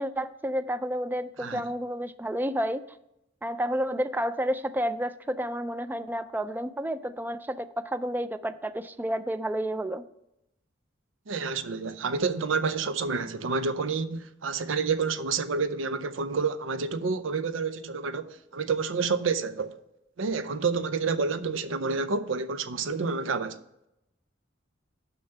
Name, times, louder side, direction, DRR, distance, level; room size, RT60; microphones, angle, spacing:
voice 1, 0.0-2.8 3.4-10.0, equal, 10° right, 0.3 m, -30 dB
voice 2, 11.3-19.8 20.2-23.6, right 4 dB, 85° right, 0.6 m, -29 dB
6.9 x 5.6 x 6.5 m
head